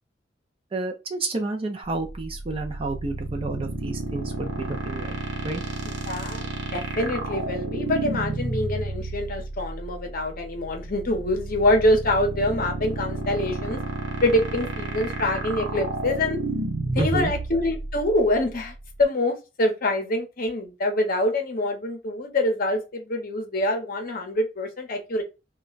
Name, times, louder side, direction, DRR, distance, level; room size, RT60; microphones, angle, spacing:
voice 1, 0.7-5.1 5.4-5.6 17.0-17.3, right 2 dB, 30° right, 0.5 m, -30 dB
sound 1, 1.8-19.0, right 2 dB, 85° right, 0.7 m, -31 dB
voice 2, 5.9-6.4 6.7-13.8 14.2-16.4 16.9-25.2, left 1 dB, 50° left, 0.7 m, -25 dB
2.3 x 2.1 x 3.8 m
head